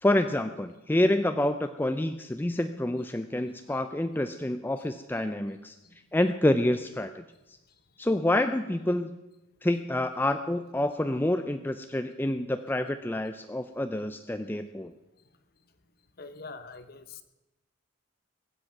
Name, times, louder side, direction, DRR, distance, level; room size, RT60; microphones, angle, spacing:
voice 1, 0.0-5.8 6.1-7.2 8.0-9.2 9.6-14.9, left 1 dB, 10° left, 8 dB, 0.4 m, -28 dB
voice 2, 16.2-17.2, left 4 dB, 45° left, 11 dB, 1.0 m, -44 dB
21.5 x 8.0 x 5.9 m, 1.0 s
head